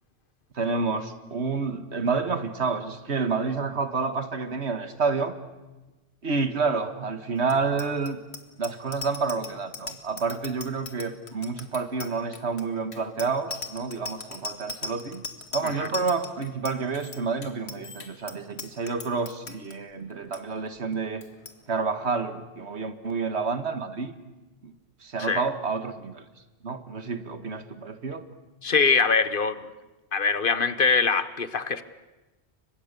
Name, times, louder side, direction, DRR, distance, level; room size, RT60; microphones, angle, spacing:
voice 1, 0.5-5.4 6.2-8.2 8.6-15.2 15.5-21.2 21.7-24.1 24.6-24.7 25.0-26.2 26.6-28.3, right 4 dB, 75° right, 1.9 m, -29 dB
Bicycle bell, 7.4-19.7 20.1-20.4 20.7-21.0 21.2-21.6, left 3 dB, 70° left, 2.2 m, -39 dB
voice 2, 28.6-29.6 30.1-31.8, left 5 dB, 55° left, 1.2 m, -23 dB
30.0 x 24.5 x 6.8 m
omnidirectional pair, 1.1 m